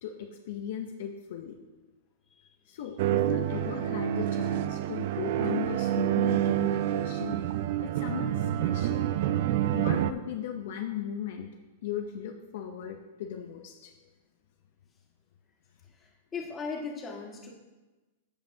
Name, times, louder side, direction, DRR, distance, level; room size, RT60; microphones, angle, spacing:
voice 1, 0.0-1.5 2.7-7.4 7.8-9.1 9.7-11.5 11.8-13.9, left 9 dB, 65° left, 3 dB, 0.7 m, -37 dB
sound 1, 3.0-10.1, right 11 dB, 60° right, 0.4 m, -28 dB
voice 2, 15.9-17.5, left 4 dB, 20° left, -1 dB, 1.8 m, -38 dB
15.0 x 5.2 x 2.8 m, 1.2 s
hypercardioid pair, 110°, 0 cm